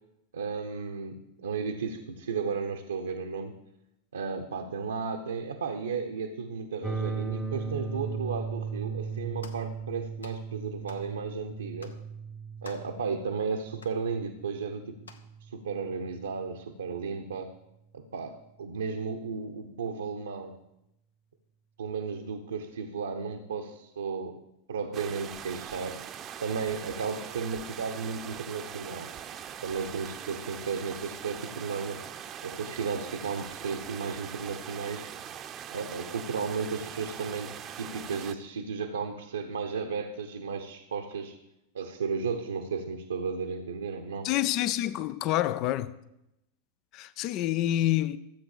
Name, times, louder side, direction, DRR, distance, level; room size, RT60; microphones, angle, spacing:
voice 1, 0.3-3.5 4.1-11.9 12.6-15.0 15.5-17.5 17.9-20.6 21.8-24.4 24.7-26.0 26.4-29.1 29.6-32.0 32.4-35.1 35.7-41.4 41.7-44.3, right 5 dB, 70° right, 1.0 m, -34 dB
sound 1, 6.8-16.8, right 5 dB, ahead, 0.9 m, -38 dB
sound 2, 9.4-9.7 10.2-10.4 10.9-11.1 11.8-12.0 12.6-13.0 13.8-14.0 15.0-15.3, left 4 dB, 75° left, 1.1 m, -48 dB
sound 3, 24.9-38.3, right 9 dB, 30° right, 0.8 m, -42 dB
voice 2, 44.2-45.9 46.9-48.2, left 13 dB, 40° left, 0.6 m, -27 dB
13.5 x 8.0 x 6.7 m
figure-of-eight pair, 90°, 0 cm